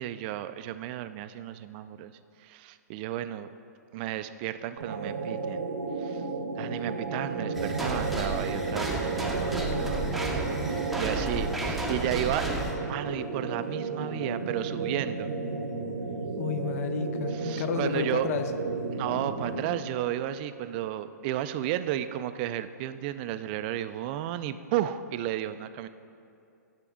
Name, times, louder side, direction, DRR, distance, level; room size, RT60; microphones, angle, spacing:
voice 1, 0.0-2.1 2.4-3.5 3.9-5.6 6.0-6.2 6.6-10.4 10.6-12.5 12.8-15.3 17.3-18.3 18.9-25.9, right 12 dB, 35° right, 12 dB, 0.3 m, -33 dB
sound 1, 4.8-19.9, right 4 dB, 75° right, 0.8 m, -33 dB
sound 2, 7.5-12.8, right 2 dB, ahead, 0.7 m, -32 dB
voice 2, 9.7-10.7 16.4-18.5, left 7 dB, 50° left, 9 dB, 0.6 m, -33 dB
9.9 x 5.9 x 3.7 m, 2.6 s
hypercardioid pair, 130°, 10 cm